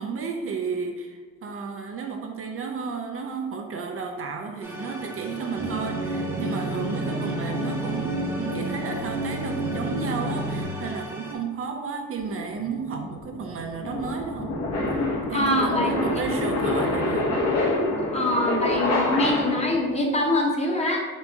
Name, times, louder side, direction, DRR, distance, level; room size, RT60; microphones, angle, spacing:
voice 1, 0.0-14.6 14.9-17.3, right 5 dB, 50° right, 3 dB, 0.5 m, -32 dB
sound 1, 4.6-11.4, equal, 10° right, 0.9 m, -38 dB
sound 2, 5.6-10.6, right 1 dB, 65° right, 1.4 m, -30 dB
sound 3, 12.2-19.8, left 2 dB, 60° left, 1.0 m, -26 dB
voice 2, 15.3-15.9 18.1-21.0, left 1 dB, 20° left, -1 dB, 0.9 m, -24 dB
4.3 x 3.5 x 2.7 m, 1.5 s
cardioid pair, 90°, 30 cm